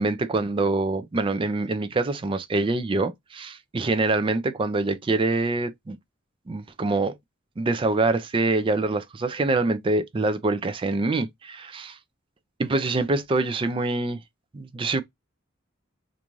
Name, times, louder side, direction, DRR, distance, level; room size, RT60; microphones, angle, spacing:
voice 1, 0.0-6.0 6.5-7.1 7.6-12.0 12.6-14.2 14.5-15.0, right 2 dB, 25° right, 0.4 m, -25 dB
2.5 x 2.3 x 3.0 m
head